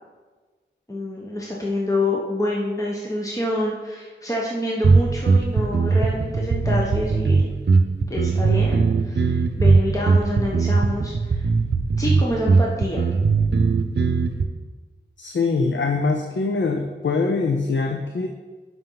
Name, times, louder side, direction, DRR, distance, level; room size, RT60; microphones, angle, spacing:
voice 1, 0.9-7.5 8.1-11.5 12.0-13.0, left 1 dB, 15° left, -4 dB, 1.2 m, -27 dB
sound 1, 4.8-14.4, right 4 dB, 65° right, 0.7 m, -19 dB
voice 2, 15.2-18.3, left 4 dB, 75° left, 4 dB, 0.6 m, -23 dB
11.0 x 5.6 x 4.0 m, 1.4 s
wide cardioid pair, 65°, 19 cm